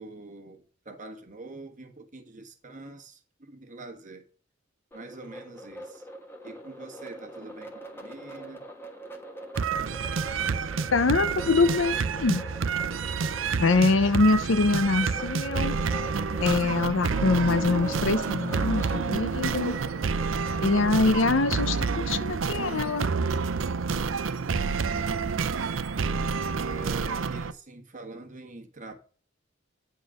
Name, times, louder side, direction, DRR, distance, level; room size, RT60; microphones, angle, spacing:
voice 1, 0.0-4.2 4.9-6.1 6.4-8.6 23.9-25.6 26.5-28.9, right 2 dB, 40° right, 1.5 m, -45 dB
sound 1, 4.9-21.6, right 1 dB, 10° left, 1.3 m, -43 dB
sound 2, 9.6-27.5, right 5 dB, 85° right, 0.6 m, -29 dB
voice 2, 10.9-12.4 13.6-15.8 16.4-19.8 20.6-23.1, left 3 dB, 85° left, 0.7 m, -24 dB
9.4 x 3.9 x 6.3 m
head